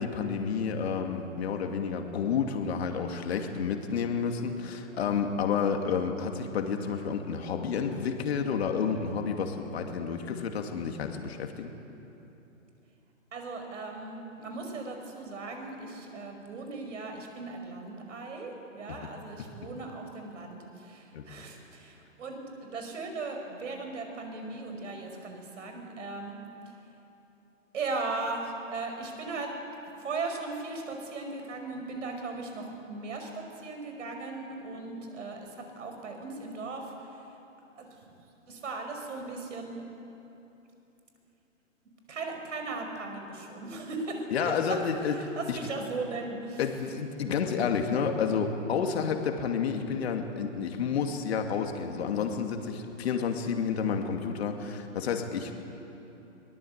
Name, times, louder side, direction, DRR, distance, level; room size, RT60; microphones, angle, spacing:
voice 1, 0.0-11.7 19.0-19.1 21.1-21.4 44.3-45.6 46.6-55.5, left 6 dB, 50° left, 4 dB, 2.5 m, -30 dB
voice 2, 13.3-26.4 27.7-29.5 30.0-37.2 37.8-37.9 38.5-39.8 42.1-44.8 45.1-46.6, right 3 dB, 65° right, 4 dB, 5.5 m, -38 dB
23.0 x 19.5 x 8.2 m, 3.0 s
hypercardioid pair, 150°, 40 cm